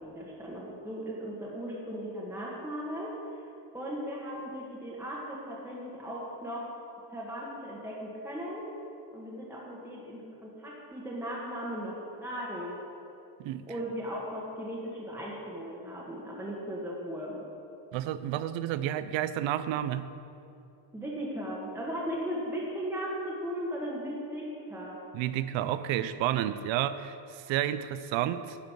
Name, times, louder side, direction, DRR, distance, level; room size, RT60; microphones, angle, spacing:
voice 1, 0.0-3.1 3.7-6.7 7.1-8.7 9.1-12.8 13.7-17.4 20.9-25.0, equal, 5° right, -5 dB, 1.3 m, -37 dB
voice 2, 17.9-20.1 25.1-28.6, right 12 dB, 80° right, 13 dB, 0.6 m, -31 dB
10.0 x 5.1 x 6.0 m, 2.7 s
cardioid pair, 125°, 45 cm